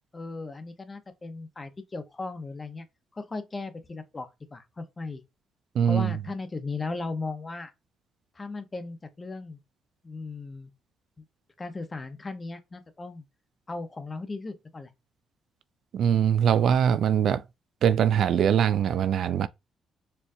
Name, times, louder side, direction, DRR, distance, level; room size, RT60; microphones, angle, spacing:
voice 1, 0.1-2.9 3.1-5.2 5.8-7.7 8.3-9.6 10.0-10.7 11.2-11.3 11.6-13.2 13.7-14.9, left 3 dB, 25° left, 0.8 m, -37 dB
voice 2, 5.8-6.1 15.9-17.4 17.8-19.5, right 8 dB, 65° right, 0.3 m, -22 dB
4.4 x 2.5 x 2.6 m
cardioid pair, 90°, 0 cm